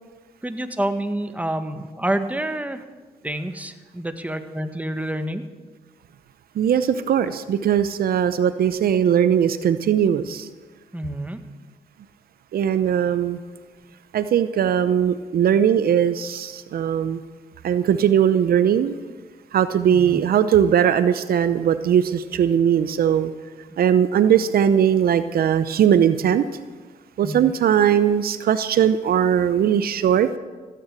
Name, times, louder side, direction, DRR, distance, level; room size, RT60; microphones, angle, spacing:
voice 1, 0.4-2.8 3.2-5.4 10.9-11.4 19.9-20.3 27.2-27.4, right 1 dB, 10° right, 8 dB, 1.6 m, -28 dB
voice 2, 6.6-10.5 12.5-13.4 14.1-17.2 17.6-18.9 19.5-23.3 23.8-26.4 27.2-30.3, right 9 dB, 70° right, 12 dB, 0.7 m, -19 dB
16.0 x 9.4 x 7.5 m, 1.4 s
supercardioid pair, 55°, 16 cm